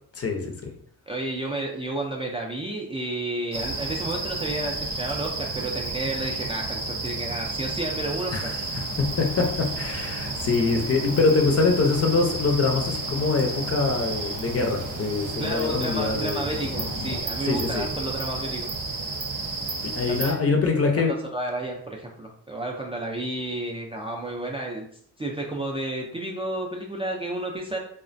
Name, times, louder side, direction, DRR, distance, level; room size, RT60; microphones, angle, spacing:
voice 1, 0.2-0.5 8.3-16.4 17.4-17.9 19.8-21.1, left 4 dB, 35° left, 2 dB, 0.6 m, -24 dB
voice 2, 1.1-8.5 15.4-18.7 20.2-20.3 21.0-24.9 25.2-27.8, right 2 dB, 15° right, 0 dB, 0.4 m, -31 dB
sound 1, 3.5-20.3, right 3 dB, 50° right, 0.7 m, -32 dB
sound 2, 8.7-17.2, left 4 dB, 85° left, 0.6 m, -42 dB
2.3 x 2.1 x 2.5 m, 0.65 s
supercardioid pair, 60°, 39 cm